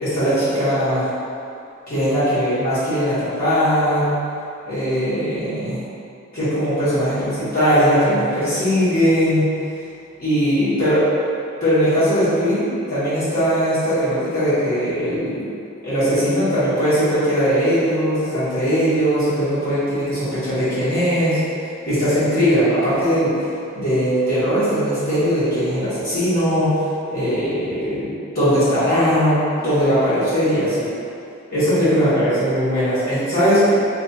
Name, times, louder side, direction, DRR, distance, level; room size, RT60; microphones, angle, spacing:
voice 1, 0.0-1.1 1.9-4.2 4.7-5.8 6.3-9.5 10.2-11.0 11.6-15.5 15.8-21.4 21.9-23.3 23.7-26.8 27.1-30.9 31.5-33.7, equal, 40° left, -14 dB, 1.4 m, -19 dB
3.1 x 2.4 x 4.0 m, 2.7 s
head